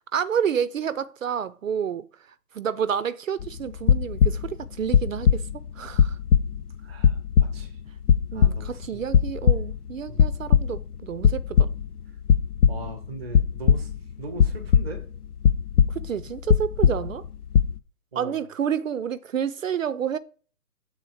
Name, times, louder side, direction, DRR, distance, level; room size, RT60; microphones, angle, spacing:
voice 1, 0.1-2.1 2.5-5.5 5.8-6.2 8.3-11.7 15.9-17.3 18.1-20.2, right 8 dB, 60° right, 0.5 m, -29 dB
sound 1, 3.4-4.5 4.9-5.7 5.9-7.7 8.0-8.8 9.1-9.9 10.2-10.8 11.2-11.9 12.3-13.0 13.3-14.0 14.4-15.2 15.4-16.2 16.5-17.3 17.5-17.8, left 8 dB, 75° left, 0.7 m, -19 dB
voice 2, 6.8-7.8 8.3-9.0 10.1-10.2 12.7-13.9 14.2-15.0 18.1-18.4, right 2 dB, 5° right, 0.6 m, -39 dB
7.1 x 3.8 x 4.7 m
hypercardioid pair, 155°, 46 cm